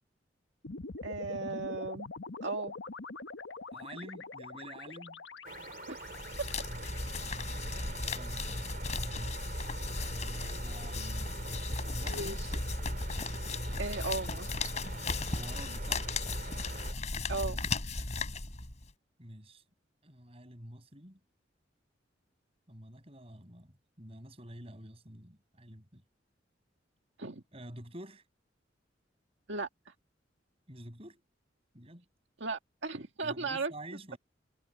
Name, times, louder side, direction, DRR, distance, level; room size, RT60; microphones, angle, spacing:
sound 1, 0.6-8.9, left 3 dB, 85° left, 1.3 m, -45 dB
voice 1, 1.0-2.1 2.4-2.7 5.9-6.1 12.0-12.5 13.8-14.7 17.3-17.6 27.2-27.4 29.5-29.9 32.4-33.7, right 3 dB, 80° right, 1.9 m, -36 dB
voice 2, 3.7-5.2 7.7-9.3 10.0-11.3 11.8-12.4 15.3-16.1 19.2-19.6 20.0-21.2 22.7-26.0 27.5-28.2 30.7-31.2 31.7-32.1 33.2-34.2, right 1 dB, 30° right, 7.2 m, -48 dB
sound 2, 5.4-16.9, right 4 dB, 50° right, 3.3 m, -46 dB
sound 3, 6.0-18.9, left 3 dB, 40° left, 3.8 m, -36 dB
head